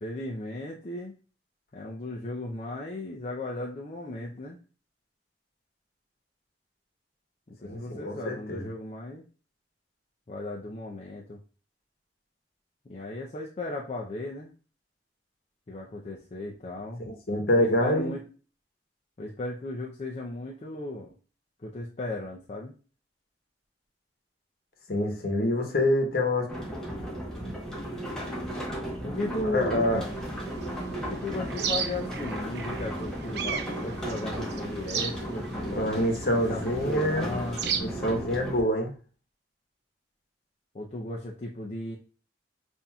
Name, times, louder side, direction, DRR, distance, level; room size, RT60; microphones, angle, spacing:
voice 1, 0.0-1.1 1.7-4.6 7.5-9.2 10.3-11.4 12.9-14.5 15.7-17.0 17.5-18.2 19.2-21.1 21.6-22.7 29.0-30.1 31.0-35.9 36.5-37.6 38.4-38.5 40.7-42.0, left 2 dB, 40° left, -2 dB, 0.5 m, -36 dB
voice 2, 7.6-8.7 17.0-18.1 24.9-26.5 29.5-30.0 35.7-38.9, left 1 dB, 60° left, 2 dB, 1.0 m, -26 dB
sound 1, 26.5-38.6, right 1 dB, 5° left, 0.9 m, -35 dB
sound 2, 30.0-37.8, right 7 dB, 70° right, 0.5 m, -36 dB
5.6 x 2.6 x 2.3 m, 0.37 s
head